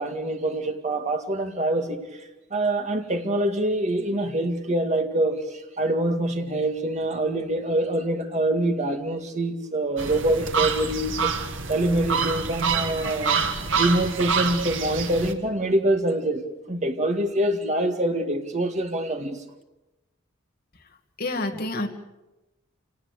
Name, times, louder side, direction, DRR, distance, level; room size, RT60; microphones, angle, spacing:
voice 1, 0.0-2.0 2.5-11.3 11.7-13.4 13.8-16.4 16.7-19.4, right 1 dB, 35° right, 2.1 m, -25 dB
sound 1, 10.0-15.3, right 5 dB, 75° right, 1.8 m, -27 dB
voice 2, 21.2-21.9, left 2 dB, 50° left, 2.3 m, -28 dB
27.0 x 18.5 x 6.9 m
head